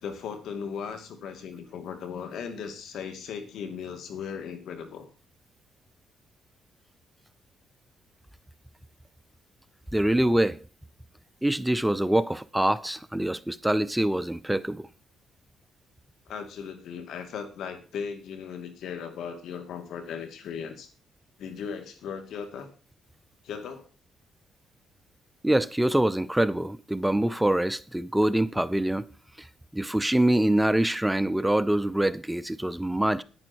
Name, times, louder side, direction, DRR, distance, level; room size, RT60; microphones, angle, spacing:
voice 1, 0.0-5.1 16.3-20.9 21.4-22.7 23.4-23.9, left 6 dB, 75° left, 2.5 m, -37 dB
voice 2, 9.9-10.6 11.4-14.9 25.4-29.1 29.4-29.5 29.7-33.2, right 1 dB, 5° right, 0.5 m, -25 dB
10.5 x 10.0 x 4.5 m
cardioid pair, 90°, 0 cm